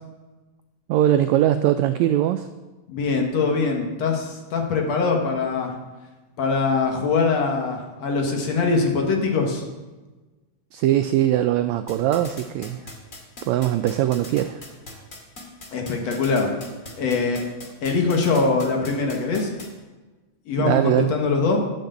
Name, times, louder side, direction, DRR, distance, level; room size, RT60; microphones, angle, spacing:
voice 1, 0.9-2.5 10.7-12.8 13.5-14.6 20.6-21.1, right 12 dB, 85° right, 10 dB, 1.6 m, -21 dB
voice 2, 2.9-5.8 6.4-9.7 15.7-16.5 17.0-17.4 17.8-19.5 20.5-21.6, left 4 dB, 60° left, 1 dB, 2.5 m, -22 dB
sound 1, 11.9-19.7, left 2 dB, 30° left, 2.1 m, -39 dB
12.0 x 6.8 x 8.1 m, 1.2 s
omnidirectional pair, 3.7 m